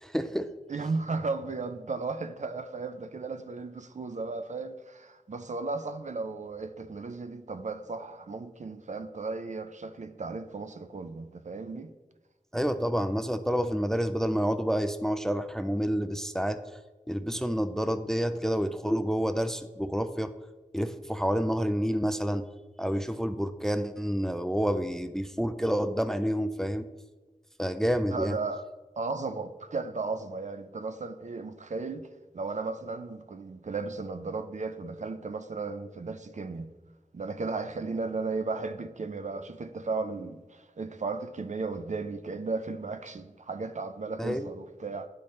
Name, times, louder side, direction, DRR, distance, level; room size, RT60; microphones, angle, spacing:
voice 1, 0.0-0.5 12.5-16.6 17.1-20.3 20.7-22.5 22.8-26.9 27.6-28.4 44.2-44.5, equal, 5° left, 0.4 m, -28 dB
voice 2, 0.7-11.9 28.1-28.6 29.0-32.1 32.3-36.7 37.1-45.1, right 3 dB, 60° right, 0.5 m, -35 dB
10.0 x 4.2 x 3.2 m
wide cardioid pair, 55°, 14 cm